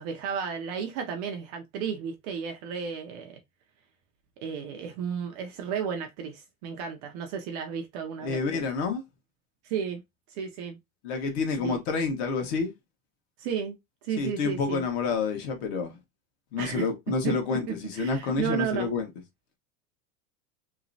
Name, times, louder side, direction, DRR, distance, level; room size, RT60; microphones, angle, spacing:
voice 1, 0.0-3.4 4.4-8.4 9.6-10.0 10.3-10.8 11.6-11.8 13.4-13.8 14.0-14.8 16.6-16.9 17.2-17.4 17.7-18.9, right 7 dB, 35° right, 0.4 m, -33 dB
voice 2, 8.2-9.0 11.0-12.7 14.2-16.0 16.5-19.1, left 4 dB, 50° left, 1.2 m, -28 dB
3.0 x 3.0 x 2.6 m
supercardioid pair, 165°, 40 cm